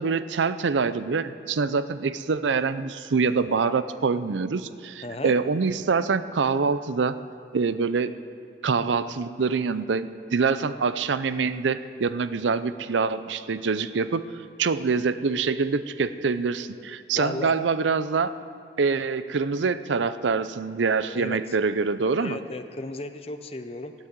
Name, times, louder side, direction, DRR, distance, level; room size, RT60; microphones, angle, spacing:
voice 1, 0.0-7.1 7.5-8.1 8.6-14.3 14.6-18.3 18.8-22.4, right 5 dB, 85° right, 13 dB, 0.5 m, -25 dB
voice 2, 5.0-5.3 17.1-17.5 21.1-21.6 22.2-23.9, left 2 dB, 30° left, 8 dB, 0.6 m, -35 dB
15.5 x 8.9 x 8.0 m, 2.3 s
head